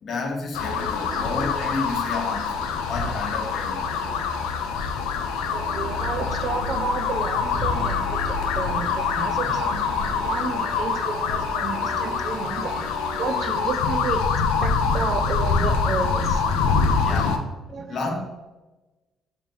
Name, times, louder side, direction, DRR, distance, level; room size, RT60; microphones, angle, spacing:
voice 1, 0.0-3.8 16.9-17.4 17.9-18.2, left 3 dB, 55° left, 1 dB, 0.8 m, -31 dB
sound 1, 0.5-17.4, left 5 dB, 85° left, 0.3 m, -25 dB
voice 2, 1.0-1.3 5.5-12.8 13.2-14.2 14.6-16.4 17.7-18.0, right 5 dB, 55° right, 8 dB, 0.3 m, -31 dB
sound 2, 2.4-15.1, equal, 75° right, 1.5 m, -38 dB
3.3 x 2.5 x 3.3 m, 1.1 s
supercardioid pair, 70°, 0 cm